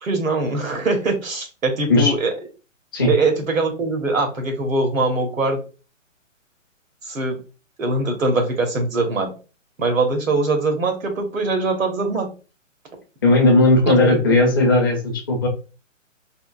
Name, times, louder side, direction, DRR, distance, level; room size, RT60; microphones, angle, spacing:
voice 1, 0.0-2.3 3.1-5.6 7.1-7.4 7.8-9.3 9.8-12.3 13.9-14.1, right 3 dB, 90° right, 3 dB, 1.2 m, -22 dB
voice 2, 13.2-15.5, left 2 dB, 20° left, 1 dB, 0.4 m, -16 dB
3.6 x 2.5 x 2.3 m, 0.34 s
hypercardioid pair, 145°, 39 cm